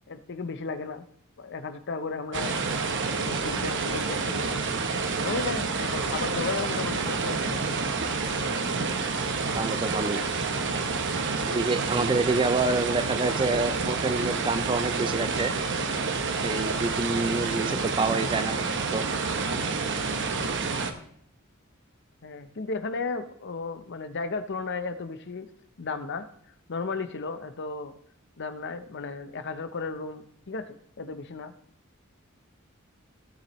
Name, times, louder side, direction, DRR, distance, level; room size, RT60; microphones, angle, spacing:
voice 1, 0.1-1.0 1.4-2.6 3.1-4.6 5.2-7.6 22.2-25.5 25.8-26.3 26.7-28.0 28.4-31.5, left 4 dB, 55° left, 10 dB, 0.7 m, -34 dB
sound 1, 2.3-20.9, right 4 dB, 60° right, 0.9 m, -28 dB
voice 2, 9.5-10.2 11.5-15.5 16.4-19.0, right 3 dB, 25° right, 12 dB, 0.4 m, -27 dB
16.5 x 7.0 x 3.1 m, 0.67 s
head